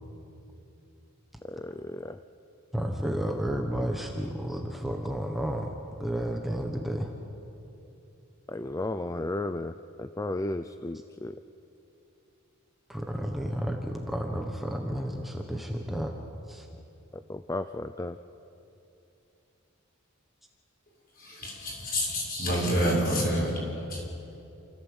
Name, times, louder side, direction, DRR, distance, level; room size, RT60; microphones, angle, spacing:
voice 1, 1.4-2.2 8.5-9.7 10.0-11.4 17.1-18.2, left 2 dB, 15° left, 10 dB, 0.4 m, -34 dB
voice 2, 2.7-5.7 6.0-7.1 12.9-16.2 16.5-16.7, equal, ahead, 2 dB, 1.2 m, -31 dB
voice 3, 21.1-24.0, equal, 45° left, -2 dB, 6.8 m, -28 dB
28.5 x 15.0 x 8.1 m, 2.8 s
head